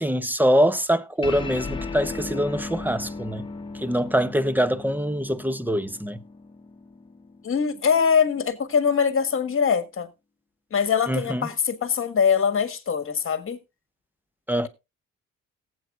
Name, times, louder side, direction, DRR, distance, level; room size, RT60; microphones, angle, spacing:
voice 1, 0.0-3.5 3.7-6.2 11.1-11.5 14.5-14.7, equal, 5° right, 0.7 m, -24 dB
sound 1, 1.2-8.0, left 3 dB, 15° left, 1.5 m, -37 dB
voice 2, 7.4-10.1 10.7-13.6, left 6 dB, 45° left, 1.6 m, -23 dB
18.0 x 8.2 x 2.4 m
cardioid pair, 90°, 30 cm